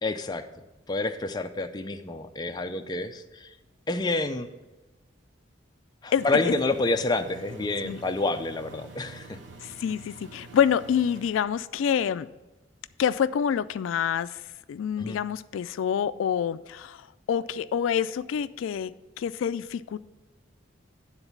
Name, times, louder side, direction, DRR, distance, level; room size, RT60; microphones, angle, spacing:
voice 1, 0.0-0.4 0.9-3.5 3.9-4.5 6.0-9.3 15.0-15.2, left 2 dB, 20° left, 6 dB, 0.5 m, -28 dB
voice 2, 6.1-6.5 7.8-8.0 9.6-12.3 13.0-14.4 14.7-18.9 19.2-20.0, left 8 dB, 85° left, 15 dB, 0.3 m, -27 dB
Engine, 6.1-11.3, right 3 dB, 65° right, 0.9 m, -47 dB
9.9 x 4.0 x 7.1 m, 1.1 s
head